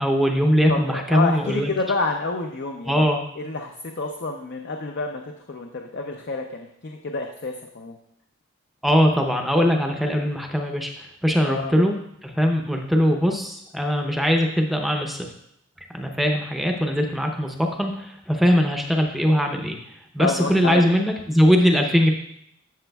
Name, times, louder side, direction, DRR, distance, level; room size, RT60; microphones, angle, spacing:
voice 1, 0.0-1.7 2.9-3.2 8.8-11.9 12.2-15.3 15.9-19.8 20.1-22.1, equal, ahead, 2 dB, 0.6 m, -21 dB
voice 2, 0.7-3.0 3.4-8.0 11.4-11.7 20.2-20.9, left 3 dB, 50° left, 2 dB, 0.6 m, -28 dB
12.0 x 7.0 x 2.3 m, 0.74 s
head